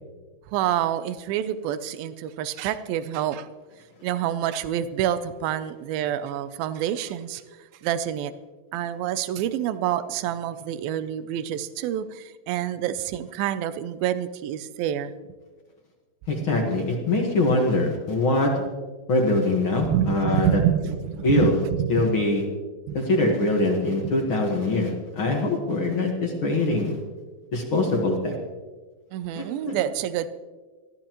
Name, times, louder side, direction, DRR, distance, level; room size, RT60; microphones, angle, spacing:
voice 1, 0.5-3.5 4.0-7.4 7.8-8.3 8.7-15.1 16.4-16.7 19.8-22.1 22.9-23.0 24.0-24.1 29.1-30.3, right 10 dB, 85° right, 12 dB, 2.5 m, -27 dB
voice 2, 16.3-18.5 19.1-20.6 21.2-21.6 21.9-22.4 22.9-27.0 27.5-28.4 29.4-29.8, left 2 dB, 50° left, 1 dB, 1.7 m, -23 dB
20.5 x 14.0 x 3.0 m, 1.4 s
omnidirectional pair, 4.2 m